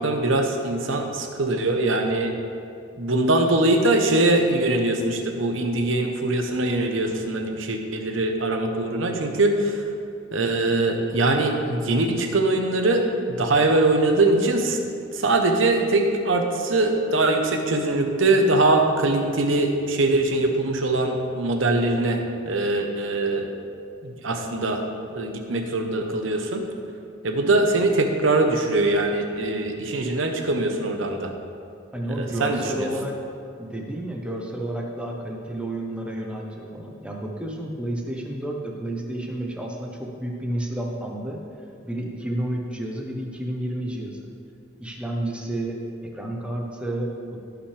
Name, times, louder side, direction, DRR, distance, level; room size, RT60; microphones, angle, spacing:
voice 1, 0.0-2.3 3.0-9.8 10.3-14.8 15.1-23.5 24.0-24.8 25.1-26.6 27.2-31.3 32.1-32.9, right 2 dB, 70° right, 4 dB, 1.0 m, -22 dB
voice 2, 31.9-33.1 33.6-41.4 41.8-44.2 44.8-45.8 46.1-47.4, right 1 dB, 5° right, -1 dB, 1.0 m, -30 dB
16.0 x 5.9 x 3.4 m, 2.4 s
head